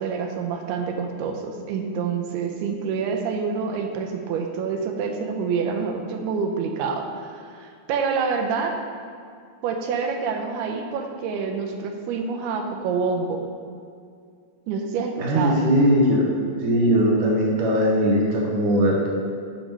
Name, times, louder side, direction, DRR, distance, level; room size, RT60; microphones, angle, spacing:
voice 1, 0.0-8.8 9.6-13.4 14.7-15.6, right 5 dB, 85° right, 3 dB, 2.7 m, -27 dB
voice 2, 15.2-16.3 16.6-19.1, equal, 65° right, -2 dB, 2.4 m, -19 dB
7.3 x 6.1 x 5.3 m, 2.2 s
omnidirectional pair, 4.5 m